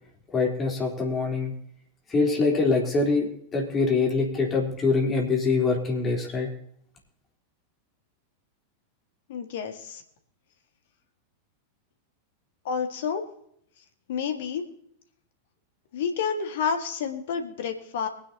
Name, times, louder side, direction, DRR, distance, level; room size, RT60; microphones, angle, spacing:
voice 1, 0.3-1.5 2.1-6.5, left 4 dB, 20° left, -1 dB, 3.6 m, -24 dB
voice 2, 9.3-10.0 12.6-13.2 14.1-14.6 15.9-18.1, left 6 dB, 55° left, 7 dB, 1.8 m, -29 dB
22.5 x 10.0 x 2.9 m, 0.69 s
figure-of-eight pair, 90°, 0 cm